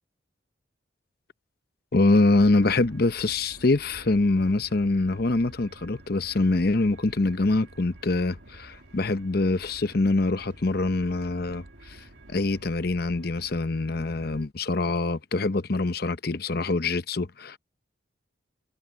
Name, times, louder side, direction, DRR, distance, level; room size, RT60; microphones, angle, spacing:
voice 1, 1.9-17.6, left 2 dB, 50° left, 0.8 m, -24 dB
sound 1, 2.3-14.5, right 1 dB, 70° right, 1.9 m, -49 dB
head